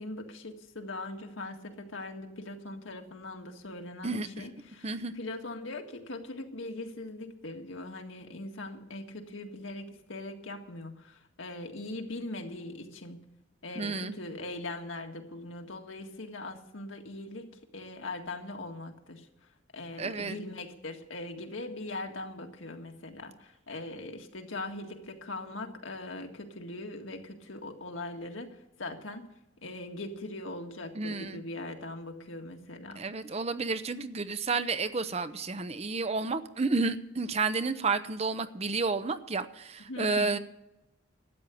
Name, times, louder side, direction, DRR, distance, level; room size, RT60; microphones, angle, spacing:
voice 1, 0.0-13.3 13.6-19.3 19.7-29.3 29.6-33.4 39.9-40.4, left 2 dB, 80° left, 3 dB, 1.8 m, -41 dB
voice 2, 4.0-4.4 4.8-5.1 13.7-14.1 20.0-20.4 30.9-31.4 33.0-40.4, right 4 dB, 30° right, 12 dB, 0.7 m, -31 dB
13.0 x 9.0 x 8.4 m, 0.90 s
head